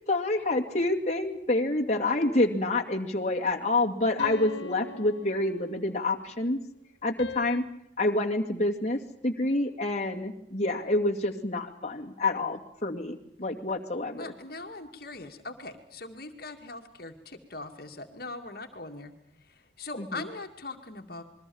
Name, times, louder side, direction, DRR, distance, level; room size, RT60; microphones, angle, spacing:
voice 1, 0.1-6.6 7.0-7.6 8.0-14.3 20.0-20.2, left 2 dB, 40° left, 1 dB, 2.5 m, -28 dB
sound 1, 2.1-3.1 4.2-6.1 7.2-7.6, left 3 dB, 85° left, 2.0 m, -42 dB
voice 2, 14.2-19.1 19.5-21.2, left 3 dB, 55° left, 5 dB, 2.4 m, -41 dB
28.0 x 22.5 x 7.2 m, 0.73 s
head